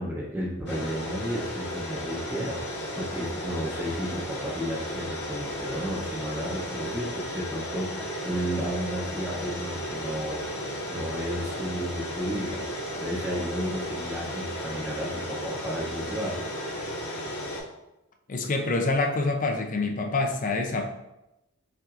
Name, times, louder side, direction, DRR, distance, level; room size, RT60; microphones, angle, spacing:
voice 1, 0.0-10.4 10.9-12.6 13.0-16.4, equal, 10° right, -6 dB, 0.7 m, -33 dB
sound 1, 0.7-17.6, equal, 55° left, 1.1 m, -34 dB
voice 2, 18.3-20.9, left 3 dB, 40° left, 3 dB, 0.5 m, -26 dB
5.7 x 2.5 x 2.4 m, 0.91 s
head